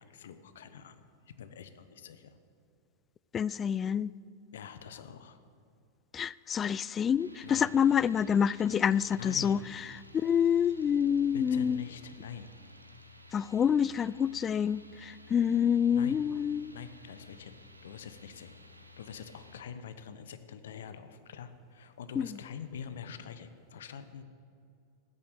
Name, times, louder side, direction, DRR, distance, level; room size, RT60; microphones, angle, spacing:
voice 1, 0.0-2.4 4.5-5.4 7.4-7.7 9.2-9.7 11.3-12.5 15.9-16.2 16.7-17.5 17.8-18.5 19.0-24.2, left 7 dB, 60° left, 1.0 m, -45 dB
voice 2, 3.3-4.1 6.1-9.6 10.2-11.8 13.3-16.7 22.2-22.3, left 8 dB, 25° left, 0.3 m, -27 dB
sound 1, 7.2-19.6, left 2 dB, 85° right, 1.1 m, -55 dB
14.5 x 10.0 x 8.1 m
figure-of-eight pair, 90°, 0 cm